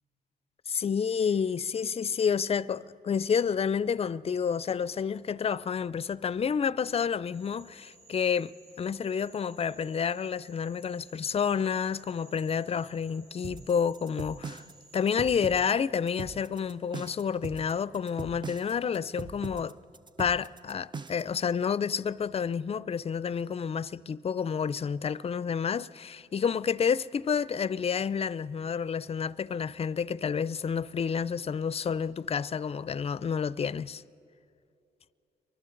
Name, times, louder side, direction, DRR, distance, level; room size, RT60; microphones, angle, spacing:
voice 1, 0.7-8.5 8.8-14.6 14.9-19.7 20.2-34.0, left 7 dB, 35° left, 0.4 m, -29 dB
Frog, 7.3-15.6, right 2 dB, 90° right, 4.8 m, -58 dB
sound 1, 13.4-21.4, right 4 dB, 25° right, 0.5 m, -41 dB
29.0 x 23.5 x 3.9 m
cardioid pair, 70°, 17 cm